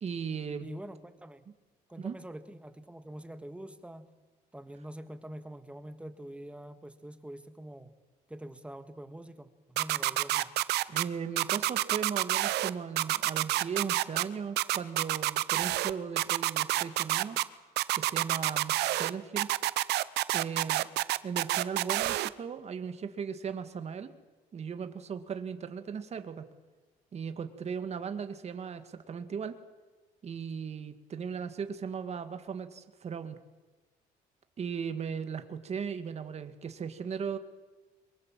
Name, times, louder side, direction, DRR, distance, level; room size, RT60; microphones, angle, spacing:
voice 1, 0.0-0.7 2.0-2.2 10.9-17.4 17.9-19.5 20.3-20.9 21.2-24.1 24.5-26.5 27.1-29.6 30.2-33.4 34.6-37.4, right 6 dB, 40° right, 9 dB, 1.9 m, -37 dB
voice 2, 0.6-1.4 1.9-4.1 4.5-7.9 8.3-10.5, right 1 dB, 5° right, 9 dB, 1.7 m, -45 dB
sound 1, 9.8-11.0 11.4-12.7 13.0-14.2 14.6-17.4 17.8-19.1 19.4-22.3, right 16 dB, 80° right, 0.8 m, -28 dB
23.0 x 22.0 x 7.5 m, 1.3 s
cardioid pair, 110°, 17 cm